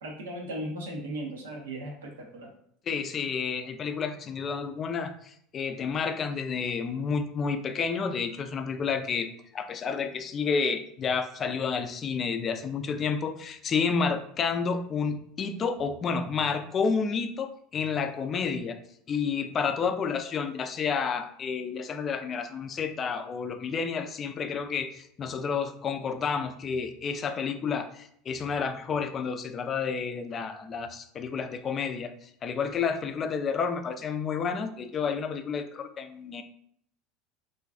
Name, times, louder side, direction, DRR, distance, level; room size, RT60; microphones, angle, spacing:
voice 1, 0.0-2.5, right 1 dB, 80° right, 1 dB, 0.6 m, -37 dB
voice 2, 2.9-5.1 5.5-18.8 19.1-36.4, left 5 dB, 35° left, 8 dB, 0.3 m, -30 dB
2.5 x 2.2 x 2.4 m, 0.68 s
hypercardioid pair, 80°, 0 cm